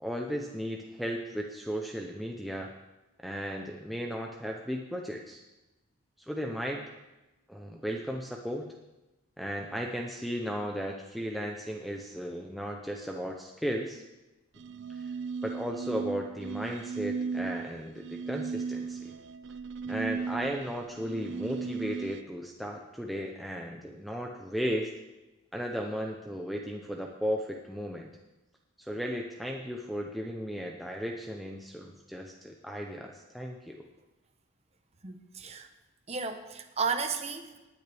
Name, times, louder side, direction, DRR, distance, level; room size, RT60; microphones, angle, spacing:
voice 1, 0.0-2.7 3.2-5.4 6.2-6.8 7.5-8.7 9.4-14.0 15.0-15.1 15.4-19.1 19.9-24.9 25.5-28.1 28.8-33.8, equal, ahead, 0 dB, 0.6 m, -35 dB
sound 1, 14.6-22.2, right 5 dB, 55° right, 0.4 m, -36 dB
voice 2, 35.0-35.7 36.1-37.7, right 5 dB, 30° right, 6 dB, 0.9 m, -33 dB
19.0 x 9.5 x 3.4 m, 1.0 s
head